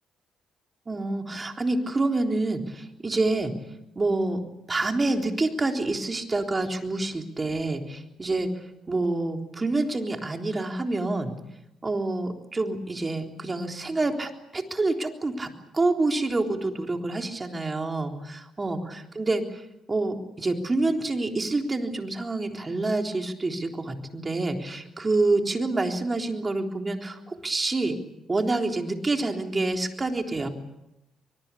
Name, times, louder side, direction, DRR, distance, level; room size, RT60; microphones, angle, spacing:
voice 1, 0.9-3.5 4.0-4.4 4.7-11.3 11.8-19.6 19.9-28.0 28.3-30.5, right 2 dB, 25° right, 3 dB, 3.7 m, -27 dB
24.5 x 22.5 x 8.5 m, 0.90 s
cardioid pair, 90°, 0 cm